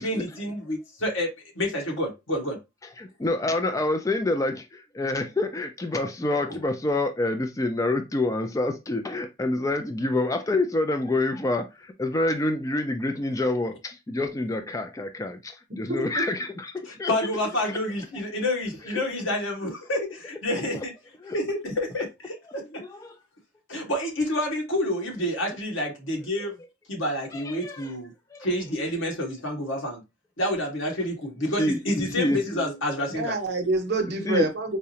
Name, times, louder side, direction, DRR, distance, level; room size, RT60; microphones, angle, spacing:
voice 1, 0.0-2.6 16.8-20.9 21.3-22.6 23.7-26.5 26.9-28.1 28.4-30.0 30.4-33.4, left 1 dB, 90° left, 1.4 m, -28 dB
voice 2, 3.0-17.1 17.7-17.8 18.9-19.0 20.7-20.8 21.2-21.4 22.6-23.2 27.3-27.9 28.3-28.5 31.6-31.8 32.2-32.5 34.2-34.5, left 2 dB, 15° left, 0.3 m, -27 dB
voice 3, 15.7-16.1 33.2-34.8, right 2 dB, 55° right, 0.7 m, -27 dB
4.7 x 2.1 x 2.7 m
head